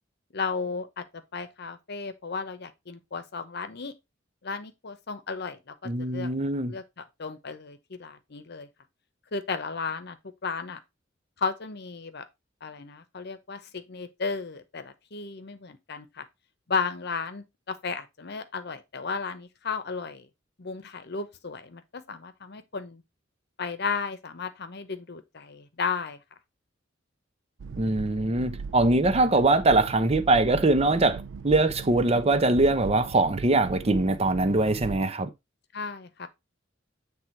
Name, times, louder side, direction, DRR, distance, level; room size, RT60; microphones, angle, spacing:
voice 1, 0.3-3.9 4.4-6.3 6.7-8.7 9.3-10.2 10.4-10.8 11.4-12.2 12.6-16.2 16.7-20.3 20.6-23.0 23.6-26.2 29.1-29.2 35.7-36.3, left 5 dB, 60° left, 0.9 m, -34 dB
voice 2, 5.8-6.8 27.8-35.3, right 2 dB, 30° right, 0.7 m, -22 dB
sound 1, 27.6-35.1, right 5 dB, 80° right, 0.4 m, -39 dB
8.1 x 3.5 x 4.4 m
head